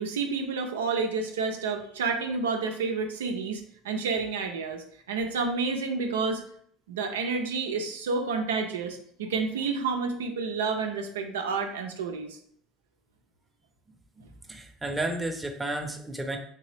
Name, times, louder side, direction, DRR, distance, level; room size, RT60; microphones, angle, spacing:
voice 1, 0.0-6.4 6.9-12.4, right 4 dB, 85° right, 4 dB, 0.4 m, -30 dB
voice 2, 14.2-16.4, right 2 dB, 10° right, 3 dB, 0.7 m, -32 dB
3.3 x 2.8 x 3.2 m, 0.63 s
hypercardioid pair, 70°, 0 cm